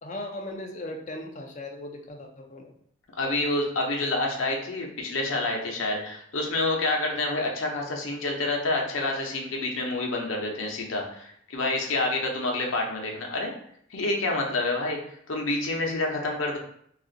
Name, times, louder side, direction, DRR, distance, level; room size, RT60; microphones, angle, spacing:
voice 1, 0.0-2.7, left 1 dB, 35° left, 2 dB, 0.4 m, -38 dB
voice 2, 3.1-13.5 13.9-16.6, left 2 dB, 75° left, 1 dB, 0.7 m, -28 dB
2.4 x 2.4 x 3.8 m, 0.67 s
head